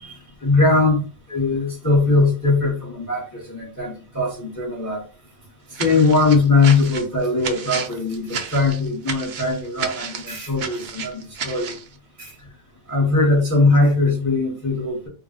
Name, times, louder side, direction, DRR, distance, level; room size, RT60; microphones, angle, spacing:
voice 1, 0.0-5.1 5.8-11.8 12.2-12.3 12.9-15.1, left 3 dB, 15° left, 0.7 m, -20 dB
sound 1, 5.7-11.9, right 6 dB, 85° right, 0.4 m, -32 dB
2.4 x 2.0 x 3.8 m
omnidirectional pair, 1.4 m